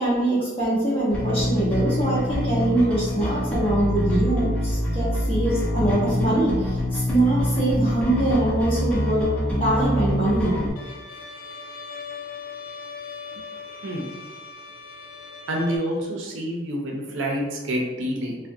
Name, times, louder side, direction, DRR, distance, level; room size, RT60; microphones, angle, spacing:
voice 1, 0.0-9.3 9.6-10.5, right 1 dB, 30° left, -9 dB, 0.9 m, -23 dB
Bass guitar, 1.1-10.7, equal, 5° left, 0.5 m, -25 dB
Bowed string instrument, 10.8-15.8, left 4 dB, 80° left, 0.4 m, -39 dB
voice 2, 15.5-18.4, equal, 75° right, 0 dB, 0.5 m, -27 dB
2.3 x 2.1 x 2.6 m, 1.2 s
head